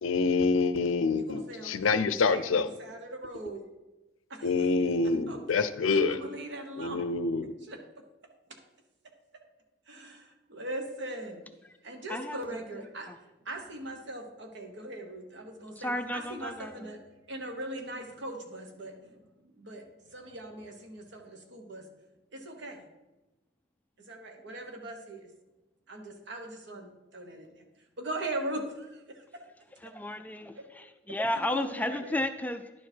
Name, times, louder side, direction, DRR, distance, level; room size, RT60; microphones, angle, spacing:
voice 1, 0.0-2.7 4.4-6.2 6.8-7.5, left 4 dB, 85° left, 13 dB, 0.5 m, -26 dB
voice 2, 1.1-3.6 4.3-4.9 5.3-7.0 7.6-7.8 9.9-11.5 11.8-17.0 17.3-19.8 20.1-21.9 22.3-22.8 24.1-25.3 25.9-27.5 28.0-29.2 31.5-32.2, right 1 dB, 60° right, 4 dB, 1.2 m, -40 dB
voice 3, 12.1-13.2 15.8-16.9 29.8-32.7, left 1 dB, 10° left, 8 dB, 0.3 m, -34 dB
11.0 x 4.7 x 4.5 m, 1.0 s
head